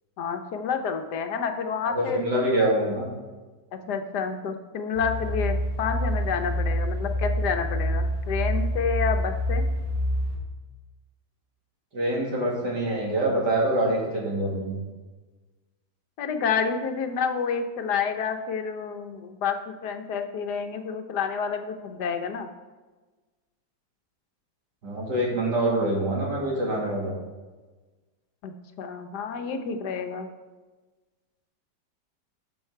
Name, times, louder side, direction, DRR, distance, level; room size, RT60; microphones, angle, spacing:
voice 1, 0.2-2.5 3.7-9.6 16.2-22.5 28.4-28.5 28.8-30.3, left 6 dB, 70° left, 6 dB, 1.4 m, -29 dB
voice 2, 1.9-3.1 11.9-14.8 24.8-27.1, right 1 dB, 75° right, -3 dB, 3.0 m, -25 dB
sound 1, 4.9-10.4, equal, 40° right, 3.2 m, -27 dB
12.0 x 6.2 x 4.6 m, 1.3 s
omnidirectional pair, 1.9 m